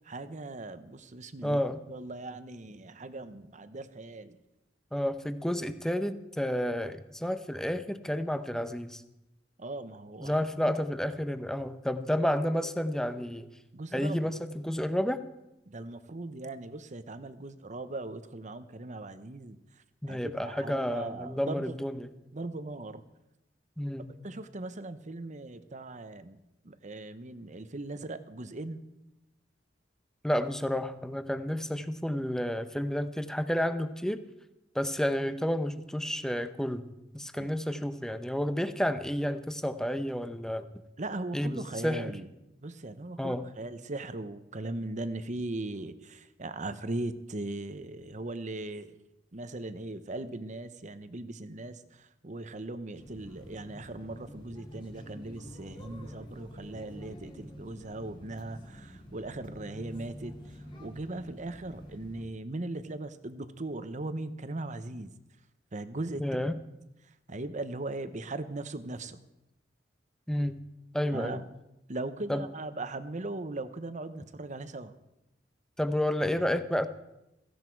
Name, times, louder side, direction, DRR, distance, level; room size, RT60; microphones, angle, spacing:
voice 1, 0.0-1.6 1.9-4.4 9.6-10.4 10.7-10.8 13.7-14.3 15.7-19.6 20.1-21.8 22.3-23.0 24.2-28.8 37.3-37.5 41.0-42.3 42.6-49.0 49.3-65.1 65.7-66.2 67.3-69.2 71.1-71.4 71.9-74.9, right 2 dB, 40° right, 12 dB, 0.9 m, -39 dB
voice 2, 1.4-1.8 4.9-9.0 10.2-13.5 13.9-15.2 20.0-22.1 23.8-24.1 30.2-34.2 34.7-36.9 37.1-40.7 41.3-42.1 43.2-43.5 66.2-66.6 70.3-70.6 70.9-71.5 72.3-72.6 75.8-76.9, equal, 5° left, 10 dB, 0.8 m, -30 dB
sound 1, 53.0-62.2, equal, 25° left, 2.6 m, -48 dB
16.5 x 15.5 x 4.7 m, 0.91 s
head